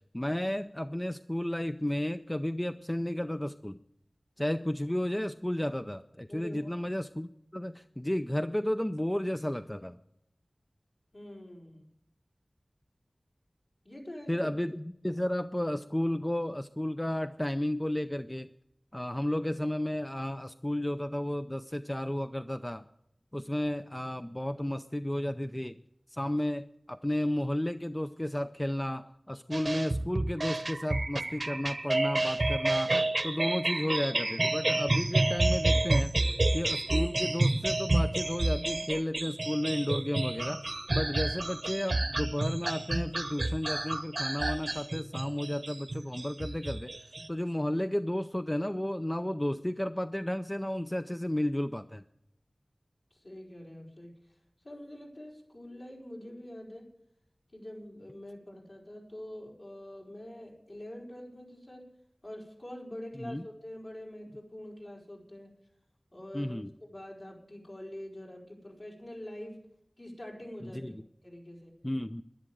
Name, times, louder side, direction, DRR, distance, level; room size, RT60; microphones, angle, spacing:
voice 1, 0.1-3.8 4.4-10.0 14.3-18.5 18.9-22.9 23.3-25.8 26.1-32.9 33.2-36.1 36.5-46.9 47.3-52.0 63.2-63.4 66.3-66.7 70.6-71.0 71.8-72.2, left 1 dB, 15° left, 9 dB, 0.5 m, -33 dB
voice 2, 6.3-6.8 11.1-11.9 13.8-14.5 53.1-54.2 54.6-56.9 57.5-61.9 62.2-65.5 66.1-69.6 70.0-70.8 71.2-71.7, left 1 dB, 60° left, -3 dB, 4.8 m, -45 dB
sound 1, 29.5-47.3, right 2 dB, 60° right, 0.9 m, -29 dB
11.5 x 11.0 x 7.8 m, 0.78 s
wide cardioid pair, 50°, 0 cm